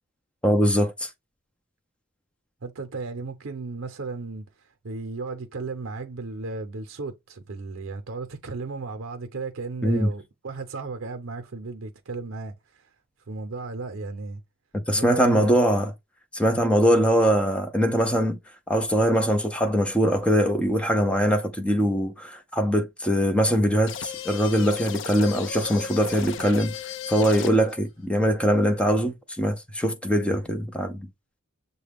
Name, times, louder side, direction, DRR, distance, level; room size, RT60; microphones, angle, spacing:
voice 1, 0.4-1.1 9.8-10.1 14.9-15.9 16.3-18.4 18.7-26.7 27.1-31.1, equal, 5° left, 0.5 m, -22 dB
voice 2, 2.6-12.9 13.3-14.4 14.9-15.5, right 3 dB, 75° right, 0.6 m, -35 dB
sound 1, 23.9-27.8, left 8 dB, 60° left, 0.4 m, -35 dB
6.5 x 2.2 x 3.4 m
head